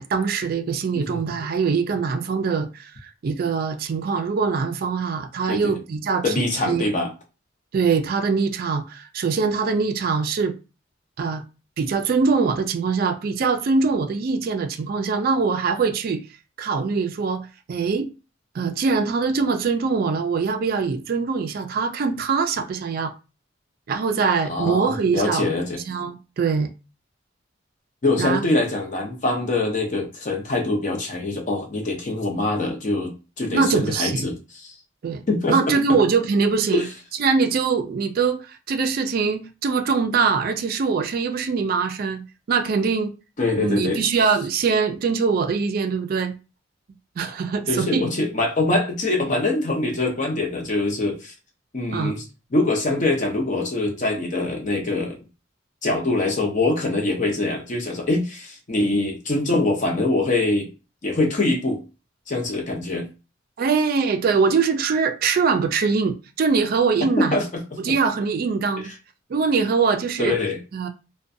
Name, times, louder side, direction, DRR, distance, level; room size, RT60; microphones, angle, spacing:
voice 1, 0.0-6.3 6.6-6.8 7.7-10.5 11.2-11.4 11.8-16.2 16.6-18.1 18.5-23.1 23.9-25.5 25.9-26.7 28.2-28.4 33.5-34.3 35.0-35.2 35.5-36.8 37.2-42.2 42.5-43.1 43.6-46.3 47.2-48.1 51.9-52.2 63.6-67.4 67.8-68.9 69.3-70.4 70.7-70.9, right 5 dB, 50° right, 0.3 m, -23 dB
voice 2, 6.2-7.1 24.4-25.8 28.0-34.7 35.3-35.6 36.7-36.9 43.4-44.0 47.7-51.3 51.7-52.2 52.5-55.2 55.8-60.7 61.0-61.8 62.3-63.1 67.2-67.5 70.2-70.6, left 2 dB, 40° left, 0.6 m, -24 dB
2.4 x 2.2 x 2.6 m
head